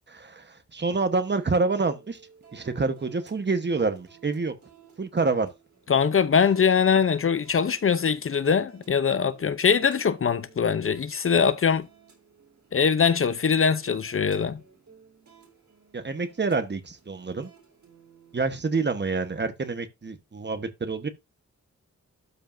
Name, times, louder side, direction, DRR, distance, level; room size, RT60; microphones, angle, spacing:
voice 1, 0.1-2.2 2.5-4.6 5.0-5.5 15.9-17.5 18.3-21.1, right 3 dB, 35° right, 1.0 m, -27 dB
sound 1, 1.2-19.0, right 7 dB, 70° right, 3.7 m, -55 dB
voice 2, 5.9-11.9 12.7-14.6, left 6 dB, 45° left, 0.5 m, -22 dB
12.0 x 5.1 x 2.5 m
wide cardioid pair, 115°, 29 cm